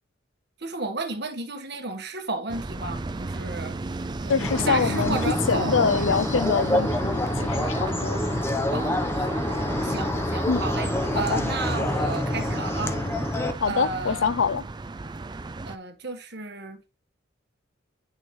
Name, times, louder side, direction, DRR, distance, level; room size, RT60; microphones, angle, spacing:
voice 1, 0.6-3.7 4.3-6.1 8.7-13.0 13.6-14.3 15.6-16.8, right 3 dB, 55° right, 1.6 m, -33 dB
sound 1, 2.5-15.8, right 2 dB, 20° right, 0.4 m, -34 dB
voice 2, 4.3-5.2 5.5-8.2 10.5-10.6 11.1-11.4 13.6-14.6, left 5 dB, 75° left, 0.5 m, -25 dB
sound 2, 4.4-13.5, left 1 dB, 10° left, 0.9 m, -27 dB
10.5 x 6.7 x 3.2 m
head